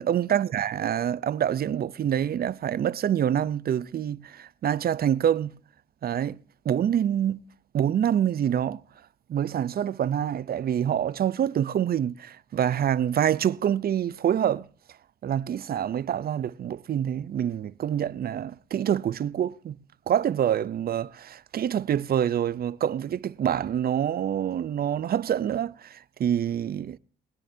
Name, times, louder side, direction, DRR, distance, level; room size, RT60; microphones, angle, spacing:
voice 1, 0.0-5.5 6.0-6.4 6.6-7.4 7.7-8.8 9.3-14.7 15.2-19.8 20.1-27.0, right 9 dB, 50° right, 0.6 m, -26 dB
21.0 x 10.0 x 2.7 m
cardioid pair, 90°, 20 cm